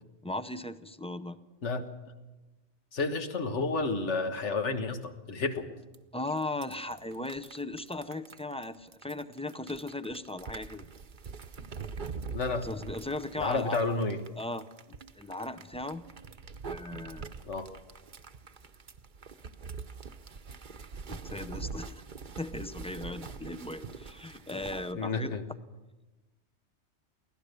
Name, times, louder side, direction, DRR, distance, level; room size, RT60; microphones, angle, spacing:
voice 1, 0.2-1.4 6.1-10.9 12.6-13.8 14.4-14.7 15.2-16.0 16.6-17.2 21.1-22.0 22.4-25.4, left 2 dB, 10° left, 10 dB, 0.4 m, -37 dB
voice 2, 2.9-5.7 12.3-12.7 13.4-14.2 17.5-17.7 24.9-25.4, left 3 dB, 80° left, 6 dB, 1.8 m, -31 dB
sound 1, 5.9-6.0 6.3-24.9, right 5 dB, 45° right, 1.0 m, -44 dB
23.5 x 16.5 x 6.8 m, 1.1 s
omnidirectional pair, 1.2 m